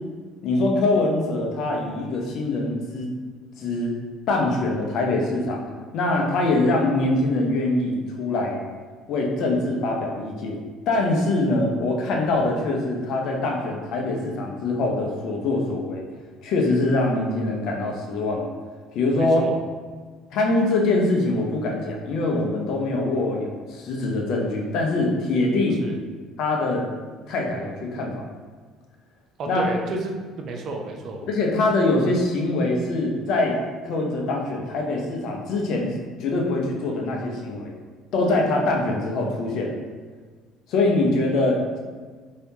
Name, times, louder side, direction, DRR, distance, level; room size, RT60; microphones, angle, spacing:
voice 1, 0.4-3.1 3.6-3.9 4.3-5.6 5.9-8.6 9.1-10.6 10.9-16.0 16.4-18.5 18.9-19.4 20.3-25.8 26.4-26.8 27.3-28.2 29.5-29.6 31.3-33.6 33.8-35.9 36.2-37.7 38.1-39.8 40.7-41.8, left 2 dB, 65° left, 0 dB, 0.6 m, -23 dB
voice 2, 19.2-19.6 25.8-26.0 29.4-31.3, right 2 dB, 55° right, 3 dB, 0.5 m, -31 dB
3.3 x 2.8 x 2.7 m, 1.5 s
hypercardioid pair, 65°, 0 cm